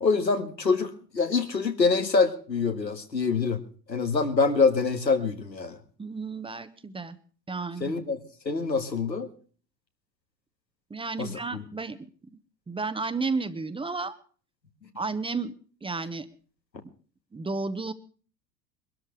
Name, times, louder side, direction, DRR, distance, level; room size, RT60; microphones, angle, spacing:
voice 1, 0.0-3.6 3.9-5.8 7.8-8.2 8.5-9.3 11.2-11.6, left 4 dB, 85° left, 5 dB, 2.0 m, -25 dB
voice 2, 6.0-7.2 7.5-7.9 10.9-12.0 12.7-14.2 15.0-15.5 15.8-16.3 17.3-17.9, right 4 dB, 10° right, 12 dB, 1.1 m, -32 dB
23.0 x 13.0 x 3.3 m, 0.41 s
figure-of-eight pair, 75°, 49 cm